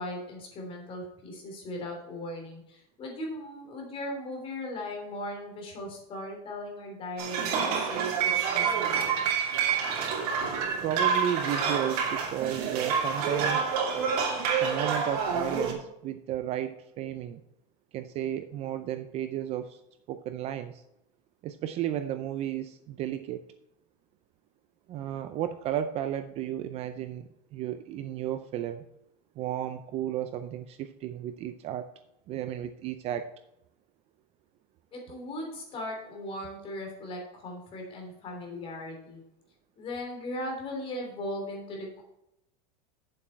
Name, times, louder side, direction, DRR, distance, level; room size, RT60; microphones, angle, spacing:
voice 1, 0.0-9.5 34.9-39.2 39.8-42.0, left 1 dB, 30° left, 0 dB, 3.2 m, -38 dB
sound 1, 7.2-15.7, right 6 dB, 80° right, 2.8 m, -28 dB
voice 2, 10.8-13.7 14.6-17.4 17.9-19.8 20.1-20.8 21.4-23.4 24.9-28.8 29.4-31.9 32.3-33.3, right 11 dB, 35° right, 10 dB, 0.5 m, -33 dB
8.5 x 7.6 x 4.4 m, 0.84 s
supercardioid pair, 165°, 19 cm